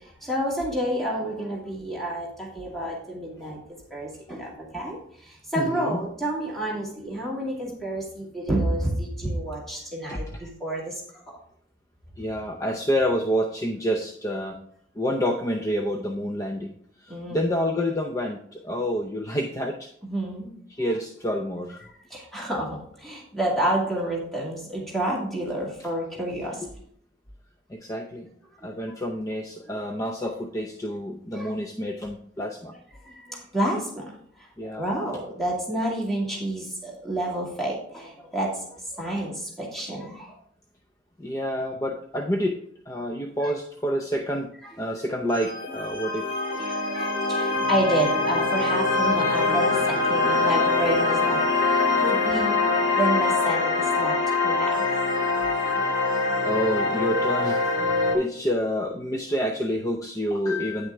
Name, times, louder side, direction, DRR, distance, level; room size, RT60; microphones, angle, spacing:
voice 1, 0.2-11.4 17.1-17.5 20.0-20.5 22.1-26.6 29.7-29.8 31.3-31.5 33.0-34.0 34.4-40.4 43.4-43.5 44.6-44.7 46.4-52.6 52.9-54.2 54.4-54.8 55.8-55.9, right 1 dB, ahead, -4 dB, 2.3 m, -29 dB
voice 2, 5.6-6.0 10.1-10.2 12.2-14.6 15.0-16.7 17.0-19.9 20.7-21.9 26.6-26.7 27.7-28.3 28.6-32.8 34.6-34.8 41.2-42.6 42.9-46.4 56.4-60.9, equal, 20° left, 2 dB, 0.6 m, -28 dB
sound 1, 45.3-58.1, left 3 dB, 85° left, 2.5 m, -24 dB
9.6 x 6.2 x 3.5 m, 0.63 s
head